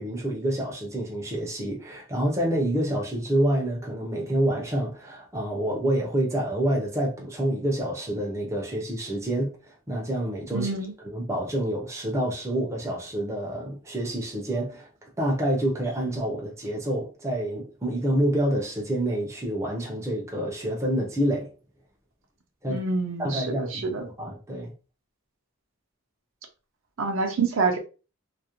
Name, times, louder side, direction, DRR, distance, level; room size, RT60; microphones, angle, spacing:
voice 1, 0.0-10.7 11.0-14.9 15.2-21.5 22.6-22.8 23.2-24.7, right 1 dB, 15° right, 0.5 m, -27 dB
voice 2, 10.5-10.9 22.7-24.1 27.0-27.8, right 4 dB, 60° right, 0.5 m, -27 dB
2.4 x 2.0 x 2.8 m
head